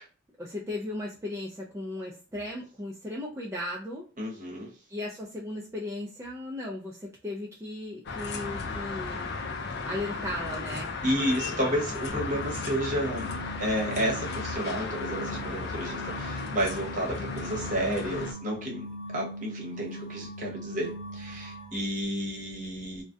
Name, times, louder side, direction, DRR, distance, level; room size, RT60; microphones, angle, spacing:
voice 1, 0.4-4.1 4.9-9.4 9.9-10.9, left 1 dB, 15° right, -3 dB, 0.4 m, -36 dB
voice 2, 4.2-4.7 11.0-13.3 13.6-18.8 19.1-23.0, equal, 40° right, -2 dB, 0.9 m, -31 dB
sound 1, 8.1-18.3, left 4 dB, 55° left, 0.4 m, -35 dB
sound 2, 12.1-21.8, equal, 25° left, 1.0 m, -41 dB
2.3 x 2.1 x 2.5 m, 0.36 s
head